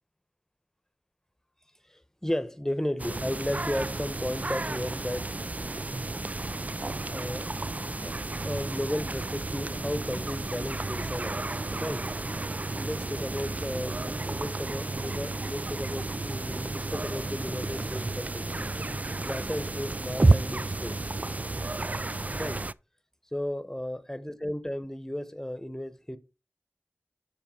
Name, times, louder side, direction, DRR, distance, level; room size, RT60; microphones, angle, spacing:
voice 1, 2.2-5.3 7.1-7.5 8.0-8.2 8.4-11.4 11.7-12.1 12.8-18.7 19.2-21.0 22.3-22.6 23.3-26.2, left 1 dB, 10° left, 1.0 m, -34 dB
sound 1, 3.0-22.7, right 2 dB, 35° right, 0.3 m, -31 dB
7.4 x 6.4 x 4.4 m
wide cardioid pair, 45°, 5 cm